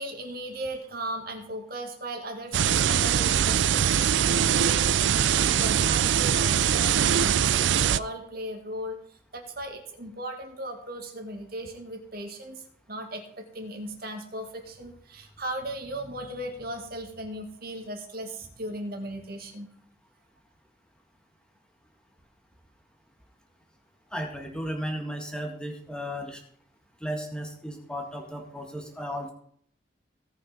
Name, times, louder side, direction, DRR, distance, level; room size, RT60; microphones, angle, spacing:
voice 1, 0.0-9.0 9.3-19.7, right 1 dB, 50° right, 3 dB, 2.2 m, -37 dB
sound 1, 2.5-8.0, right 9 dB, 70° right, 0.4 m, -22 dB
voice 2, 24.1-26.4 27.0-29.3, equal, 5° left, 2 dB, 1.8 m, -34 dB
17.5 x 5.9 x 5.4 m, 0.63 s
head